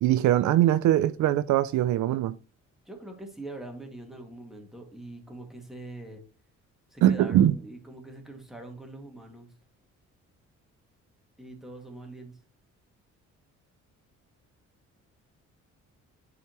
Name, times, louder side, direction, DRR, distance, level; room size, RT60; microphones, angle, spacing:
voice 1, 0.0-2.4 7.0-7.5, right 12 dB, 75° right, 0.5 m, -22 dB
voice 2, 2.9-6.2 6.9-9.5 11.4-12.4, right 2 dB, ahead, 2.1 m, -43 dB
11.0 x 4.3 x 3.0 m
cardioid pair, 90°, 30 cm